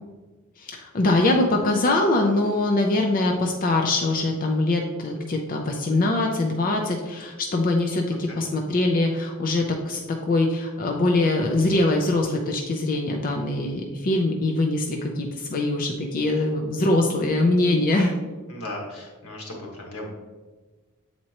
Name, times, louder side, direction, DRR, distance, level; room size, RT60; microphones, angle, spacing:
voice 1, 0.6-10.0 10.3-18.1, left 2 dB, 40° left, 2 dB, 0.5 m, -23 dB
voice 2, 18.5-20.1, left 1 dB, 85° left, -1 dB, 1.5 m, -36 dB
7.6 x 4.3 x 2.9 m, 1.3 s
head